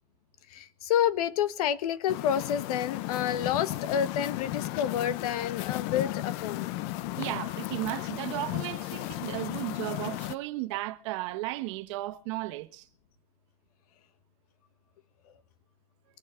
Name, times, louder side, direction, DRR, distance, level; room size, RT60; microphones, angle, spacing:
voice 1, 0.5-6.7 7.1-7.2, left 9 dB, 85° left, 1.5 m, -29 dB
sound 1, 2.1-10.4, left 16 dB, 45° left, 0.7 m, -35 dB
voice 2, 7.1-12.9, right 18 dB, 55° right, 1.3 m, -35 dB
23.0 x 10.5 x 4.6 m
supercardioid pair, 175°, 19 cm